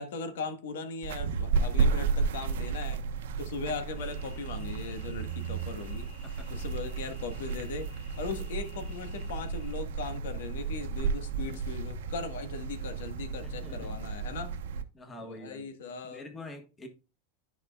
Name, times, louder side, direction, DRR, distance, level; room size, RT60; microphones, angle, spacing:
voice 1, 0.0-3.0 3.4-6.1 6.5-7.9 8.2-14.6 15.2-16.2, left 4 dB, 85° left, 1.5 m, -39 dB
sound 1, 1.0-14.8, right 5 dB, 85° right, 1.1 m, -33 dB
sound 2, 4.0-9.7, left 3 dB, 45° left, 3.8 m, -57 dB
voice 2, 13.4-13.9 14.9-15.7 16.0-16.9, left 2 dB, 15° left, 1.3 m, -45 dB
13.5 x 5.0 x 2.4 m
supercardioid pair, 160°, 0 cm